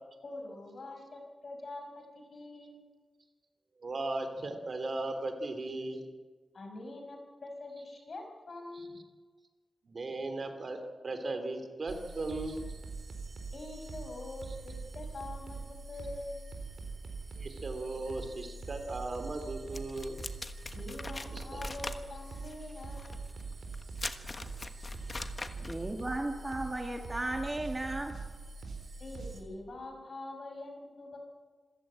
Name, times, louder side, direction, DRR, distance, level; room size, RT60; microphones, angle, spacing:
voice 1, 0.2-2.8 6.5-9.0 13.5-16.4 20.7-23.2 29.0-31.2, left 2 dB, 50° left, 4 dB, 5.5 m, -44 dB
voice 2, 3.8-6.0 9.8-12.6 17.4-20.2 21.3-21.6, right 2 dB, 45° right, 7 dB, 3.1 m, -37 dB
sound 1, 11.9-29.4, right 3 dB, 60° right, 4.4 m, -43 dB
sound 2, 19.7-25.9, left 2 dB, 25° left, 1.3 m, -42 dB
voice 3, 25.6-28.1, right 1 dB, 15° right, 3 dB, 1.7 m, -35 dB
27.0 x 15.0 x 8.8 m, 1.4 s
wide cardioid pair, 175°, 0 cm